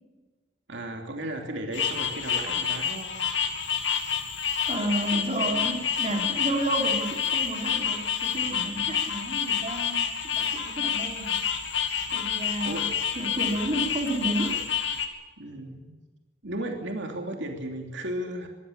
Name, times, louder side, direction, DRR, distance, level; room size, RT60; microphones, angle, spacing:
voice 1, 0.7-3.1 12.6-12.8 15.4-15.9 16.4-18.5, right 1 dB, 65° right, 2 dB, 3.0 m, -34 dB
sound 1, 1.7-15.1, left 7 dB, 65° left, 2.7 m, -28 dB
voice 2, 4.6-11.5 12.1-12.9 13.2-14.6, right 1 dB, 35° right, 1 dB, 3.8 m, -31 dB
24.0 x 15.5 x 8.8 m, 1.3 s
head